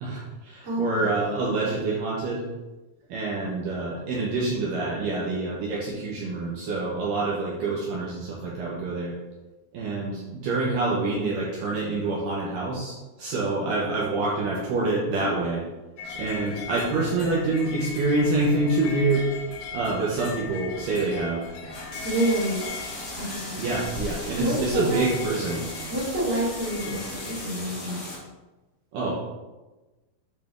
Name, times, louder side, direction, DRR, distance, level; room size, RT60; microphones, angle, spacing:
voice 1, 0.0-2.5 3.1-9.1 9.7-15.6 16.2-19.3 19.7-21.5 23.6-25.6 28.9-29.1, right 2 dB, 75° right, -5 dB, 2.2 m, -26 dB
voice 2, 0.6-1.5 22.0-22.7 23.1-23.9 24.3-25.1 25.9-28.0, right 1 dB, 30° right, -8 dB, 1.5 m, -28 dB
sound 1, 16.0-27.3, left 5 dB, 80° left, 2.2 m, -39 dB
sound 2, 21.6-28.2, left 1 dB, 45° left, 2.1 m, -37 dB
8.2 x 3.3 x 3.5 m, 1.1 s
omnidirectional pair, 4.5 m